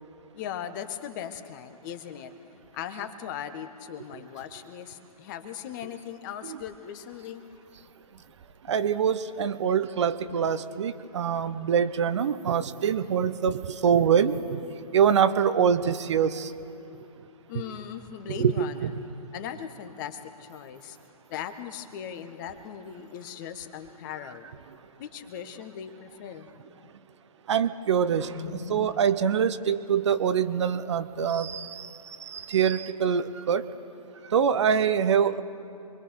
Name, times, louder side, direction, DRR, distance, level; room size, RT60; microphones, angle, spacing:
voice 1, 0.3-2.3 2.7-7.4 8.8-8.9 10.3-10.5 10.8-10.9 17.5-18.9 19.3-21.0 21.3-24.5 25.0-26.9 28.3-29.0, left 9 dB, 30° left, 9 dB, 1.5 m, -39 dB
voice 2, 8.7-14.6 14.9-16.5 18.4-18.9 27.5-28.4 28.7-33.6 34.3-35.4, right 7 dB, 45° right, 11 dB, 1.0 m, -24 dB
27.0 x 22.5 x 6.6 m, 3.0 s
figure-of-eight pair, 130°, 20 cm